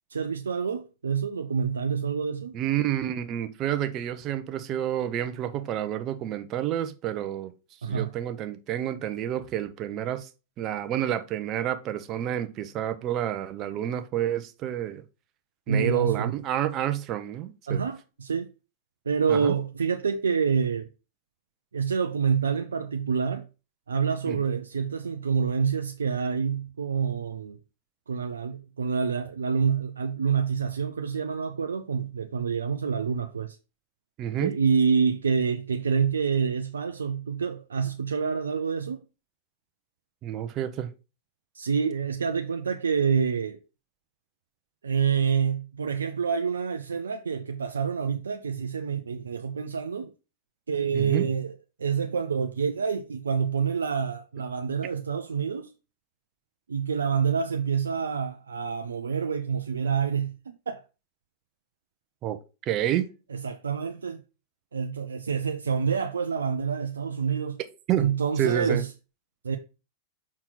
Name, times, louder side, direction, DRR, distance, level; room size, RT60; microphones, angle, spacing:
voice 1, 0.1-2.5 7.8-8.1 15.7-16.3 17.7-18.5 19.1-20.9 21.7-23.5 23.9-27.6 28.1-33.6 34.4-39.0 41.5-43.6 44.8-50.1 50.7-51.5 51.8-55.7 56.7-60.8 63.3-64.2 64.7-67.6 68.0-68.9 69.4-69.6, right 6 dB, 85° right, 0.5 m, -27 dB
voice 2, 2.5-7.5 7.8-10.3 10.6-15.0 15.7-17.8 19.3-19.5 24.3-24.4 34.2-34.5 40.2-40.9 50.9-51.3 62.2-62.4 62.6-63.1 67.9-68.1 68.4-68.8, right 11 dB, 40° right, 0.9 m, -29 dB
6.0 x 4.4 x 3.9 m
hypercardioid pair, 100°, 0 cm